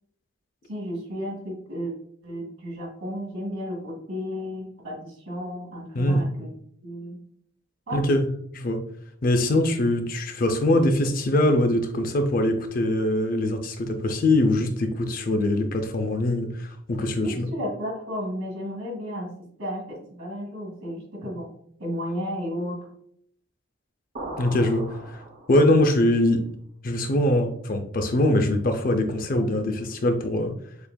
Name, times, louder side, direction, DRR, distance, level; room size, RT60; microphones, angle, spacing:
voice 1, 0.7-1.9 2.2-6.5 6.8-7.2 7.9-8.0 17.2-19.3 19.6-21.5 21.8-22.8, equal, 80° right, -2 dB, 1.7 m, -33 dB
voice 2, 5.9-6.2 7.9-8.3 8.5-8.8 9.2-17.5 24.4-25.2 25.5-26.4 26.8-30.5, left 1 dB, 40° left, 6 dB, 0.5 m, -23 dB
sound 1, 24.2-25.9, right 1 dB, 40° right, 0.7 m, -38 dB
6.9 x 2.5 x 2.2 m, 0.66 s
head